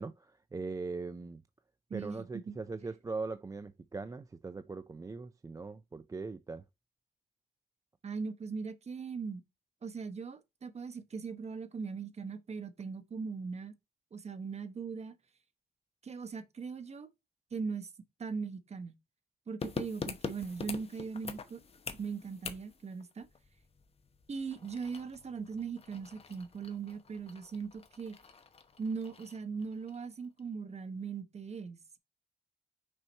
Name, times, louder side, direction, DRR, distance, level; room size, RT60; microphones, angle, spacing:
voice 1, 0.0-1.4 1.9-6.6, right 3 dB, 20° right, 0.4 m, -40 dB
voice 2, 1.9-2.5 8.0-9.4 9.8-13.7 14.1-15.2 16.0-17.1 17.5-17.9 18.2-18.9 19.5-21.6 21.9-23.3 24.3-28.2 28.8-32.0, right 5 dB, 40° right, 1.0 m, -39 dB
sound 1, 19.6-30.1 30.4-30.5, left 5 dB, 35° left, 0.9 m, -45 dB
6.3 x 4.5 x 4.3 m
wide cardioid pair, 140°, 18 cm